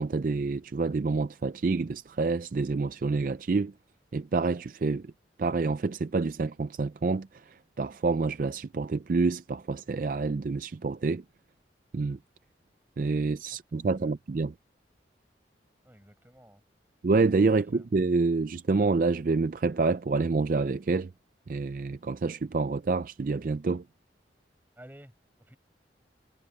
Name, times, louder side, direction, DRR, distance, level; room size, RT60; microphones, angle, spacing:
voice 1, 0.0-3.7 4.1-5.1 5.4-11.2 11.9-12.2 13.0-14.5 17.0-21.1 21.5-23.8, right 3 dB, 50° right, 0.4 m, -27 dB
voice 2, 15.8-16.6 17.5-17.9 24.8-25.1 25.4-25.6, equal, 10° right, 8.0 m, -52 dB
head